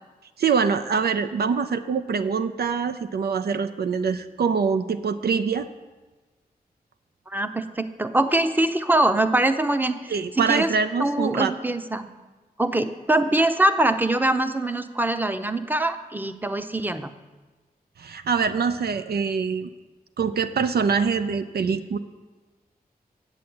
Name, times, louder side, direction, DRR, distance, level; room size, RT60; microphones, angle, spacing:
voice 1, 0.4-5.7 10.1-11.5 18.0-19.7 20.2-22.0, right 5 dB, 80° right, 10 dB, 0.5 m, -24 dB
voice 2, 7.3-10.7 11.0-12.1 12.6-17.1, right 1 dB, 10° right, 10 dB, 0.7 m, -23 dB
8.4 x 7.5 x 7.8 m, 1.3 s
cardioid pair, 55°, 16 cm